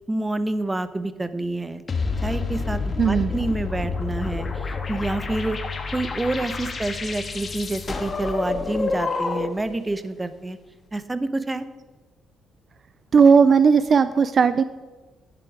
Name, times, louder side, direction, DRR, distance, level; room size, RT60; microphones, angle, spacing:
voice 1, 0.1-1.8 2.2-5.6 5.9-10.6 10.9-11.6, right 2 dB, 15° right, 13 dB, 0.8 m, -28 dB
sound 1, 1.9-9.7, left 4 dB, 35° left, 1.5 m, -28 dB
voice 2, 3.0-3.3 13.1-14.6, right 6 dB, 45° right, 14 dB, 0.4 m, -16 dB
11.0 x 10.5 x 4.7 m, 1.3 s
cardioid pair, 90°, 0 cm